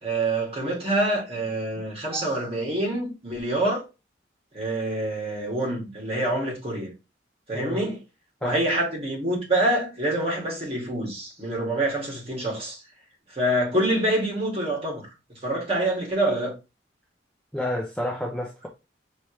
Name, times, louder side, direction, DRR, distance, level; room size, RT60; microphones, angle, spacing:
voice 1, 0.0-3.9 4.5-6.9 7.5-8.0 8.4-12.8 13.3-15.1 15.4-16.5, right 1 dB, 30° right, 2.2 m, -26 dB
voice 2, 7.5-7.9 8.4-8.6 17.5-18.7, left 1 dB, 5° left, 0.7 m, -30 dB
5.1 x 3.1 x 3.2 m
head